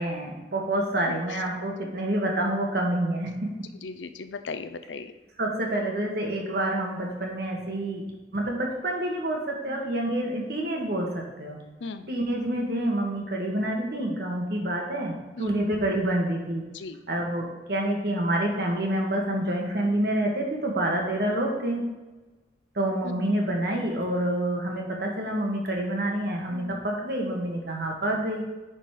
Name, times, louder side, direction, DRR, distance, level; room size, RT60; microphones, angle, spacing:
voice 1, 0.0-3.5 5.4-8.1 8.3-11.6 12.1-16.6 17.1-21.9 22.7-28.4, right 1 dB, 60° right, 0 dB, 1.7 m, -27 dB
voice 2, 3.8-5.1 9.7-9.8 11.8-12.1 15.4-15.5 16.7-17.0 23.0-23.3 26.5-26.8, left 4 dB, 85° left, 10 dB, 0.6 m, -37 dB
10.0 x 4.3 x 4.8 m, 1.1 s
head